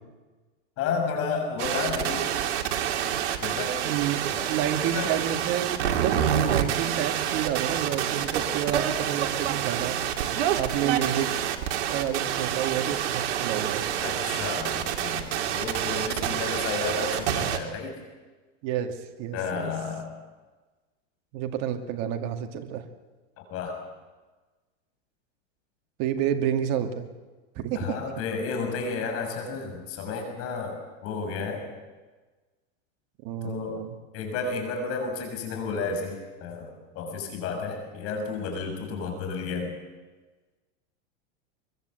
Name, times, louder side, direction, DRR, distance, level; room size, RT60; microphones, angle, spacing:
voice 1, 0.8-2.3 3.4-3.8 4.3-4.4 4.9-5.1 14.0-18.0 19.3-20.2 23.4-23.8 27.7-31.7 33.4-33.8 34.1-39.8, left 4 dB, 40° left, 4 dB, 7.1 m, -32 dB
sound 1, 1.6-17.6, right 10 dB, 70° right, 2.9 m, -27 dB
voice 2, 3.8-4.2 4.5-10.0 10.6-11.3 11.9-13.8 18.6-19.7 21.3-22.9 26.0-27.1 27.6-28.0 33.2-33.9, right 10 dB, 45° right, 6 dB, 2.4 m, -29 dB
24.0 x 23.0 x 7.9 m, 1.3 s
supercardioid pair, 135°, 36 cm